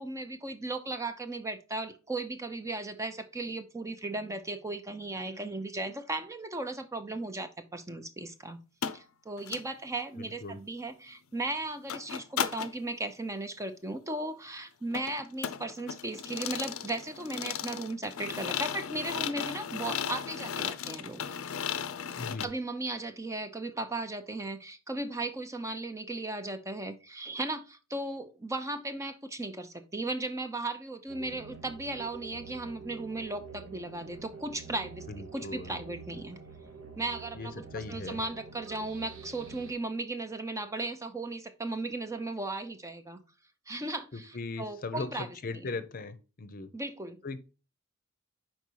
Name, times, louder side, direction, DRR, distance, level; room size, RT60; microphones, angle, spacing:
voice 1, 0.0-8.6 8.9-21.2 22.4-36.4 37.0-43.2 43.7-45.3 45.5-45.7 46.7-47.2, right 2 dB, 15° right, 0.6 m, -36 dB
sound 1, 8.8-9.0 9.4-9.6 11.9-12.7 14.9-22.4, left 8 dB, 85° left, 0.5 m, -35 dB
voice 2, 10.1-10.6 22.2-22.5 35.1-35.8 37.3-38.2 44.1-46.7 47.2-47.4, left 3 dB, 45° left, 0.7 m, -39 dB
sound 2, 31.1-39.7, right 5 dB, 70° right, 1.1 m, -47 dB
5.4 x 4.6 x 4.6 m
head